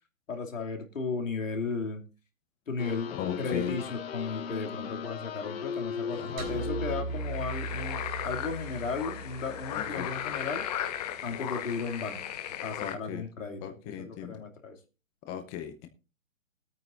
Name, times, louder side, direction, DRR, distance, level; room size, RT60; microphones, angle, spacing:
voice 1, 0.3-2.1 2.7-10.7 11.2-12.2 12.6-14.8, left 4 dB, 75° left, 3 dB, 2.7 m, -35 dB
sound 1, 2.8-7.4, left 7 dB, 50° left, 1.4 m, -37 dB
voice 2, 3.2-3.8 6.1-6.6 9.7-10.1 12.8-13.2 13.6-14.4 15.3-15.9, left 9 dB, 15° left, 7 dB, 0.7 m, -37 dB
sound 2, 6.4-10.8, right 3 dB, 30° right, 3.8 m, -38 dB
sound 3, 7.1-13.0, left 10 dB, 30° left, 1.2 m, -36 dB
21.0 x 9.0 x 2.6 m, 0.31 s
hypercardioid pair, 145°, 39 cm